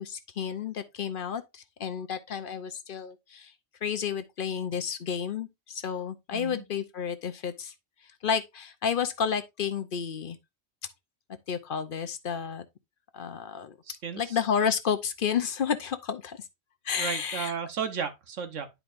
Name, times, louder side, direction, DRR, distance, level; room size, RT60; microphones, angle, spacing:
voice 1, 0.0-3.5 3.8-7.7 8.2-10.4 11.5-12.7 13.1-13.7 14.2-16.4 16.8-17.5, left 7 dB, 55° left, 0.8 m, -31 dB
voice 2, 6.3-6.7 13.8-14.4 17.0-18.7, right 6 dB, 85° right, 1.4 m, -34 dB
10.5 x 4.6 x 2.5 m
omnidirectional pair, 1.2 m